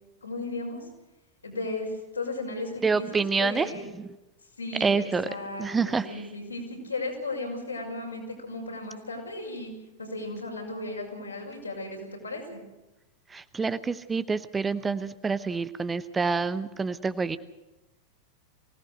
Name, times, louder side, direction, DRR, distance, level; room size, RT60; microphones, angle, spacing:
voice 1, 0.2-0.9 1.4-3.9 4.6-9.7 10.0-12.6, left 2 dB, 80° left, 0 dB, 6.1 m, -35 dB
voice 2, 2.8-4.1 4.8-5.3 5.6-6.3 13.3-17.4, right 4 dB, 15° right, 14 dB, 0.8 m, -27 dB
24.0 x 17.5 x 6.5 m, 0.99 s
figure-of-eight pair, 90°, 0 cm